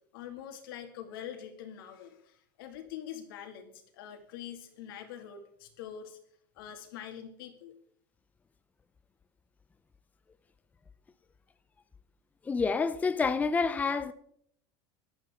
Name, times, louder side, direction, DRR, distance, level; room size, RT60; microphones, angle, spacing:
voice 1, 0.1-6.2 6.6-7.7, left 9 dB, 85° left, 2.5 m, -44 dB
voice 2, 12.5-14.1, left 4 dB, 15° left, 0.6 m, -28 dB
15.5 x 12.0 x 3.8 m
supercardioid pair, 135°, 11 cm